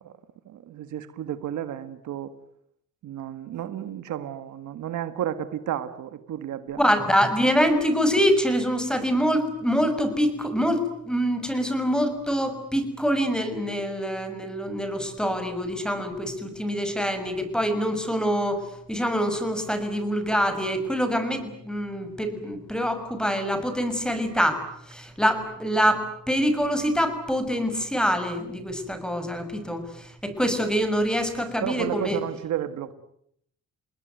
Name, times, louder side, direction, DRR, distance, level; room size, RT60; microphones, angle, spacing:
voice 1, 0.5-2.3 3.0-6.8 31.6-32.9, right 10 dB, 75° right, 11 dB, 1.8 m, -32 dB
voice 2, 6.8-32.2, equal, 5° left, 9 dB, 6.1 m, -25 dB
29.0 x 20.0 x 9.4 m, 0.73 s
cardioid pair, 90°, 30 cm